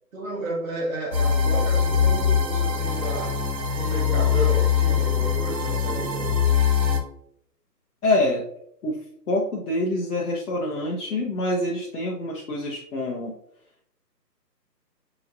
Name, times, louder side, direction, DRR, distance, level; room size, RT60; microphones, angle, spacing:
voice 1, 0.1-3.4 3.8-6.5, right 1 dB, 55° right, -1 dB, 0.9 m, -32 dB
sound 1, 1.1-7.0, left 7 dB, 90° right, 1.0 m, -22 dB
voice 2, 8.0-8.5 8.8-13.4, left 1 dB, 65° left, -2 dB, 0.8 m, -26 dB
4.9 x 2.9 x 2.5 m, 0.71 s
hypercardioid pair, 160°, 50 cm